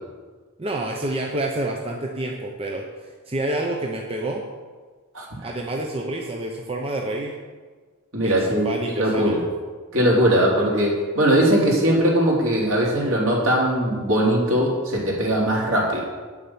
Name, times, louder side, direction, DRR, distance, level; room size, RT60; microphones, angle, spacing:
voice 1, 0.6-4.4 5.4-7.4 8.2-9.3, right 1 dB, 25° right, 0 dB, 0.8 m, -28 dB
voice 2, 8.1-8.7 9.0-9.4 9.9-16.0, right 1 dB, 60° right, -3 dB, 3.3 m, -20 dB
9.6 x 7.2 x 7.2 m, 1.4 s
head